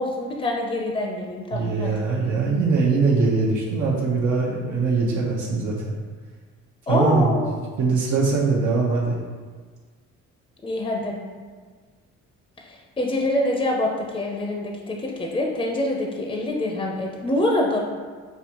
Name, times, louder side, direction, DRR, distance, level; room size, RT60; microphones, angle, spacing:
voice 1, 0.0-1.9 6.9-7.5 10.6-11.2 12.6-17.8, left 1 dB, 15° left, 0 dB, 0.5 m, -25 dB
voice 2, 1.5-5.9 6.9-7.3 7.8-9.2, right 4 dB, 75° right, -4 dB, 0.7 m, -22 dB
5.3 x 2.4 x 2.9 m, 1.5 s
cardioid pair, 90°, 30 cm